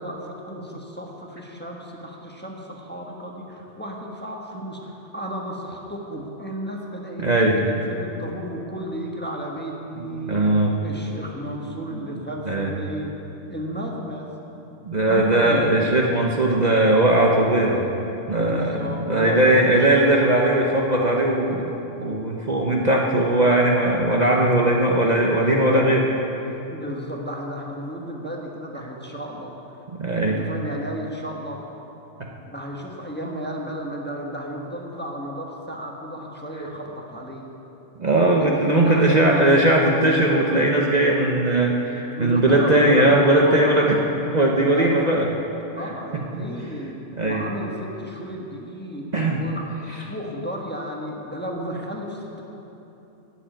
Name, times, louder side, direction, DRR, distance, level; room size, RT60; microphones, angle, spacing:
voice 1, 0.0-10.5 10.8-13.1 13.5-14.3 15.1-15.6 18.3-19.9 26.7-29.8 30.3-31.8 32.4-37.5 38.4-39.6 42.2-43.9 44.6-45.0 45.8-46.9 47.2-49.1 49.3-52.4, equal, 10° left, -1 dB, 1.2 m, -33 dB
voice 2, 7.2-7.6 10.0-10.7 12.5-12.7 14.8-17.9 18.3-26.1 30.0-30.4 38.0-44.0 44.3-45.3 46.3-46.4 47.2-47.4 49.1-49.4, right 1 dB, 40° right, -2 dB, 0.9 m, -19 dB
11.0 x 7.4 x 9.1 m, 3.0 s
omnidirectional pair, 1.3 m